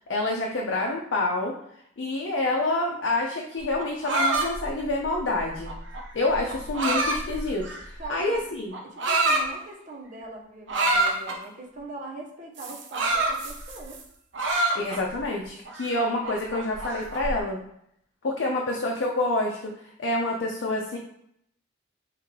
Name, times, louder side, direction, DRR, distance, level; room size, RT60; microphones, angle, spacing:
voice 1, 0.0-1.5 2.0-5.7 6.1-8.7 14.7-17.6 18.2-19.7 20.0-21.0, left 2 dB, 80° left, -1 dB, 0.5 m, -27 dB
sound 1, 3.6-8.0 8.7-9.4 10.7-11.4 12.6-14.0 14.3-15.2 15.6-17.3, right 2 dB, 70° right, 0.7 m, -27 dB
voice 2, 8.0-8.4 8.9-14.0, right 2 dB, 40° right, -1 dB, 0.8 m, -41 dB
3.2 x 3.2 x 3.6 m, 0.72 s
head